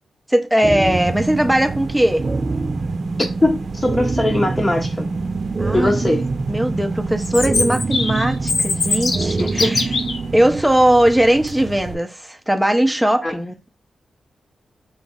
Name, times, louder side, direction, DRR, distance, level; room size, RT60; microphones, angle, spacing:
voice 1, 0.3-2.3 5.6-6.0 6.5-9.8 10.3-13.7, right 1 dB, 5° right, 0.7 m, -19 dB
sound 1, 0.6-10.6, right 3 dB, 35° right, 0.3 m, -25 dB
sound 2, 0.8-11.9, right 5 dB, 70° right, 0.7 m, -33 dB
voice 2, 3.2-5.1 5.7-6.2 9.4-9.7 13.2-13.4, left 1 dB, 20° left, 0.9 m, -20 dB
Chirp tweet, 7.2-10.2, left 4 dB, 60° left, 0.7 m, -22 dB
3.8 x 3.1 x 3.6 m
cardioid pair, 75°, 0 cm